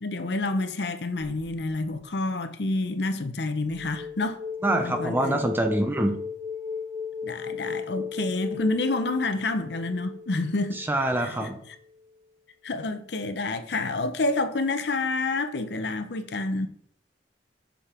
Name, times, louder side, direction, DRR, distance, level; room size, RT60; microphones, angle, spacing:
voice 1, 0.0-4.4 4.7-5.4 7.2-10.8 11.2-11.5 12.6-16.7, left 2 dB, 75° left, 0.7 m, -28 dB
sound 1, 3.6-11.3, left 5 dB, 45° right, 2.7 m, -36 dB
voice 2, 4.6-6.2 10.7-11.6, right 1 dB, 10° right, 0.6 m, -25 dB
6.9 x 5.1 x 4.4 m
head